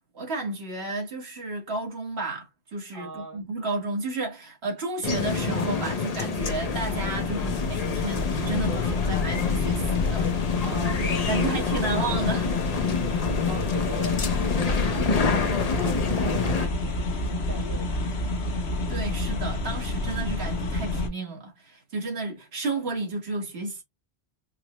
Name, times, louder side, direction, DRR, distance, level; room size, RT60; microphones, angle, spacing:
voice 1, 0.0-10.3 11.0-12.5 18.9-23.8, right 3 dB, 80° right, 1.5 m, -32 dB
voice 2, 2.9-3.5 10.6-12.0 13.4-18.3, right 4 dB, 60° right, 1.5 m, -41 dB
sound 1, 5.0-16.7, left 4 dB, 45° left, 0.6 m, -28 dB
sound 2, 6.4-21.1, left 3 dB, 90° left, 1.1 m, -29 dB
4.8 x 2.0 x 2.9 m
omnidirectional pair, 1.1 m